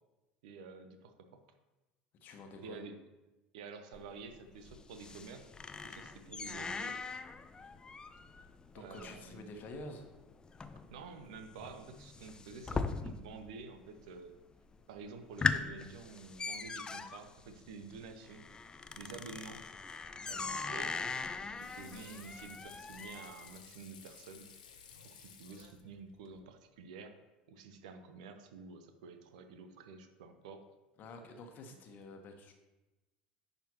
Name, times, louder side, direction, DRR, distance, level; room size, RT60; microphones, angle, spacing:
voice 1, 0.4-1.4 2.6-2.9 3.5-5.5 5.8-7.0 8.8-9.5 10.9-14.4 14.9-18.5 19.0-19.6 20.3-21.1 21.6-24.5 25.0-27.2 27.5-30.6, right 4 dB, 60° right, 8 dB, 0.8 m, -49 dB
voice 2, 2.2-2.8 8.2-8.4 8.7-10.1 31.0-32.5, left 2 dB, 40° left, 5 dB, 1.3 m, -49 dB
sound 1, 3.9-13.5 13.8-14.4 14.8-14.9 15.2-23.5, left 4 dB, 20° left, 0.5 m, -40 dB
Water / Sink (filling or washing), 21.4-26.4, left 6 dB, 70° left, 1.0 m, -56 dB
10.5 x 6.7 x 2.9 m, 1.1 s
figure-of-eight pair, 75°, 5 cm